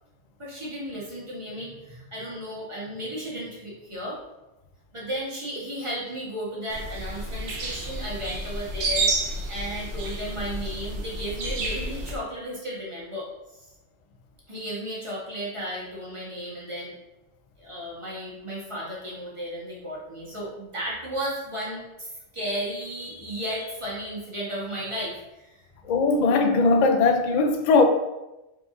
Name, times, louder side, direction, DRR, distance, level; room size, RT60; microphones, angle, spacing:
voice 1, 0.4-4.2 4.9-13.6 14.5-16.9 17.6-25.5, equal, 25° right, 1.3 m, -34 dB
sound 1, 6.7-12.2, right 2 dB, 75° right, 1.1 m, -30 dB
voice 2, 25.8-27.8, left 3 dB, 60° left, 0.4 m, -19 dB
4.6 x 3.9 x 2.6 m
omnidirectional pair, 1.2 m